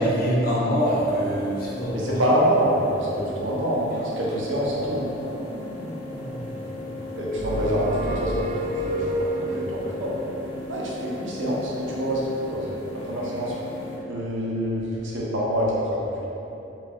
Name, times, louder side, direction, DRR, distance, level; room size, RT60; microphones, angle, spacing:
voice 1, 0.0-2.1, equal, 50° left, -6 dB, 0.7 m, -23 dB
sound 1, 0.8-14.0, left 2 dB, 85° left, 0.8 m, -37 dB
voice 2, 1.9-3.9 4.2-5.1 7.1-8.5 8.8-10.1 10.7-12.2 12.5-12.7 13.0-13.5 14.1-16.3, equal, 80° right, -4 dB, 0.7 m, -26 dB
sound 2, 4.7-7.8, equal, 65° left, 1.1 m, -40 dB
sound 3, 7.3-9.8, right 1 dB, 45° right, 0.3 m, -28 dB
3.1 x 2.4 x 3.5 m, 2.9 s
head